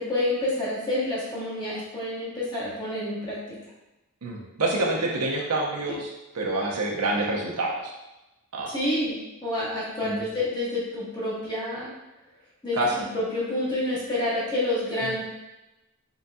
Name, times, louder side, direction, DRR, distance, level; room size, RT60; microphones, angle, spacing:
voice 1, 0.0-3.4 8.7-9.2 9.4-11.9 12.6-15.2, left 1 dB, 20° left, -8 dB, 1.2 m, -28 dB
voice 2, 4.2-6.1 6.3-7.8 8.5-8.7 10.0-10.3 12.8-13.0, right 2 dB, 90° right, -1 dB, 0.8 m, -27 dB
4.0 x 3.8 x 2.3 m, 1.0 s
head